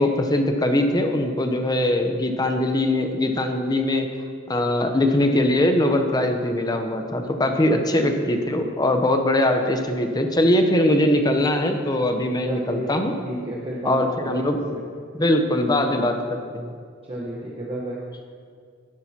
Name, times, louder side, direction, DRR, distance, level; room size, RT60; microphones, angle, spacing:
voice 1, 0.0-4.1 4.5-13.1 13.8-14.6 15.2-16.7, left 1 dB, 20° left, 5 dB, 0.7 m, -21 dB
voice 2, 12.4-13.0 13.2-14.8 17.0-18.0, equal, 30° right, -4 dB, 1.0 m, -32 dB
12.5 x 10.0 x 2.9 m, 2.1 s
head